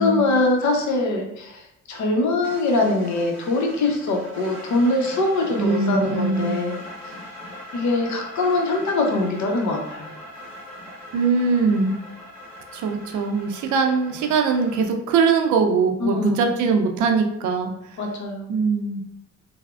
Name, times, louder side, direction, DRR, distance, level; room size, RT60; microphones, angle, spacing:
voice 1, 0.0-1.6 1.9-6.8 7.7-10.1 16.0-16.5 18.0-18.5, left 2 dB, 65° left, 2 dB, 0.7 m, -23 dB
sound 1, 2.4-14.9, left 1 dB, 15° left, 1.4 m, -40 dB
voice 2, 5.6-6.6 11.1-11.9 12.7-17.7 18.5-19.0, right 4 dB, 75° right, 5 dB, 0.5 m, -21 dB
3.2 x 2.0 x 2.3 m, 0.78 s
cardioid pair, 90°, 30 cm